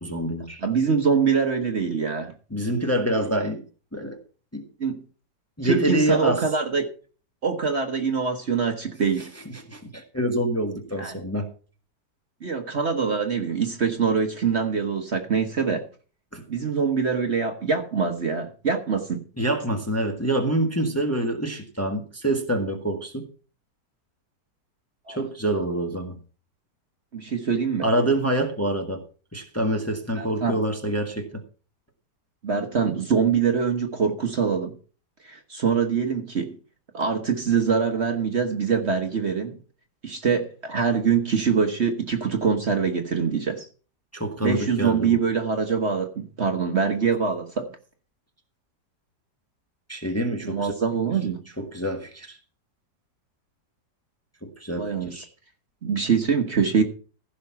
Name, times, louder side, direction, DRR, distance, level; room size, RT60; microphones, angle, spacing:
voice 1, 0.0-0.6 2.5-3.6 3.9-4.2 4.5-4.7 5.6-6.4 9.5-11.5 16.3-16.4 19.4-23.3 25.1-26.2 27.8-29.0 29.3-31.4 44.1-45.2 49.9-50.7 51.6-52.4 54.4-55.3, right 1 dB, 10° left, 3 dB, 1.3 m, -26 dB
voice 2, 0.6-2.3 4.8-5.0 5.6-6.9 7.4-9.3 11.0-11.2 12.4-15.8 16.5-19.2 25.1-25.2 27.1-27.9 30.2-30.6 32.4-34.8 35.2-36.6 36.9-39.6 40.0-43.7 44.4-47.7 50.4-51.4 54.8-55.2 55.8-56.8, right 6 dB, 45° right, 6 dB, 1.3 m, -24 dB
15.5 x 5.9 x 5.7 m, 0.39 s
omnidirectional pair, 1.8 m